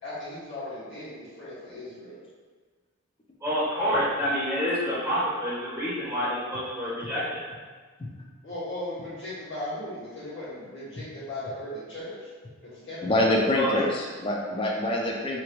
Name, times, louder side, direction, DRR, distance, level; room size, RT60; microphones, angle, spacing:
voice 1, 0.0-2.2 8.4-12.3 12.6-13.9, left 1 dB, 60° left, -11 dB, 1.5 m, -37 dB
voice 2, 3.4-7.4 13.5-13.8, equal, 10° right, -10 dB, 0.7 m, -28 dB
voice 3, 13.0-15.4, left 1 dB, 25° left, -1 dB, 0.4 m, -25 dB
2.9 x 2.6 x 2.9 m, 1.5 s
head